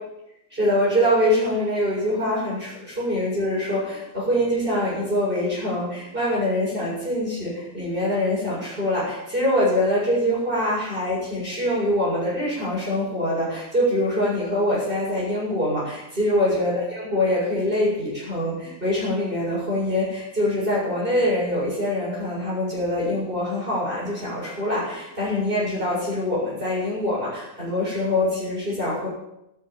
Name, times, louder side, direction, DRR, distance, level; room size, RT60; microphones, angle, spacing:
voice 1, 0.5-29.1, left 1 dB, 40° right, -7 dB, 7.8 m, -24 dB
12.5 x 11.5 x 9.3 m, 0.87 s
omnidirectional pair, 1.4 m